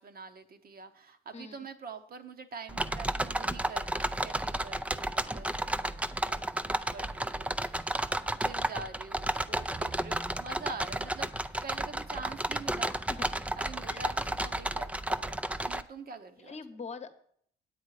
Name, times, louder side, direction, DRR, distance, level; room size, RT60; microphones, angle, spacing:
voice 1, 0.0-5.9 6.2-7.9 8.2-11.3 11.6-12.9 13.6-16.6, right 4 dB, 50° right, 8 dB, 0.9 m, -45 dB
voice 2, 1.3-1.6 13.1-13.3 13.9-14.0 16.4-17.4, left 5 dB, 35° left, 9 dB, 1.0 m, -43 dB
sound 1, 2.7-15.8, right 1 dB, 5° right, 0.4 m, -32 dB
9.3 x 8.0 x 4.9 m, 0.64 s
cardioid pair, 90°, 20 cm